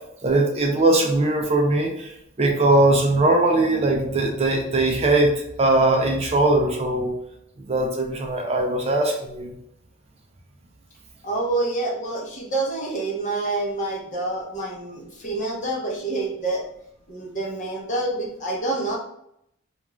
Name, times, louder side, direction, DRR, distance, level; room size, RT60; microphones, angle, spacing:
voice 1, 0.2-2.1 2.4-7.1 7.6-9.5, right 2 dB, 30° right, 2 dB, 0.4 m, -20 dB
voice 2, 11.2-16.6 17.1-19.0, right 2 dB, 40° left, -2 dB, 0.8 m, -27 dB
2.4 x 2.3 x 3.0 m, 0.76 s
head